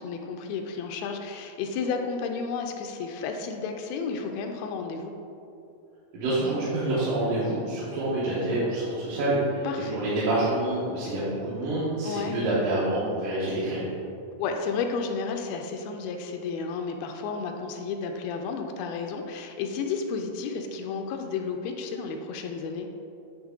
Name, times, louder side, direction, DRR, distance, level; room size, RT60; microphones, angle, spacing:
voice 1, 0.0-5.1 9.6-10.0 12.0-12.4 14.4-22.9, left 5 dB, 85° left, 4 dB, 2.3 m, -32 dB
voice 2, 6.1-13.9, right 1 dB, 70° right, -10 dB, 2.5 m, -27 dB
9.5 x 3.4 x 3.6 m, 2.7 s
omnidirectional pair, 4.4 m